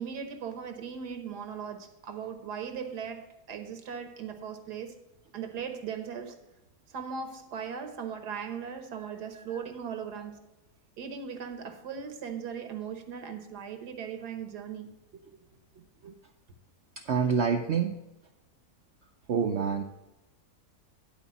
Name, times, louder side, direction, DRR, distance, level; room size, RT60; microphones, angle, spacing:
voice 1, 0.0-4.9 5.3-6.4 6.9-10.4 11.0-14.9, right 7 dB, 80° right, 1.6 m, -38 dB
voice 2, 17.0-18.0 19.3-19.8, right 6 dB, 60° right, 0.7 m, -27 dB
10.5 x 4.5 x 7.0 m
omnidirectional pair, 1.7 m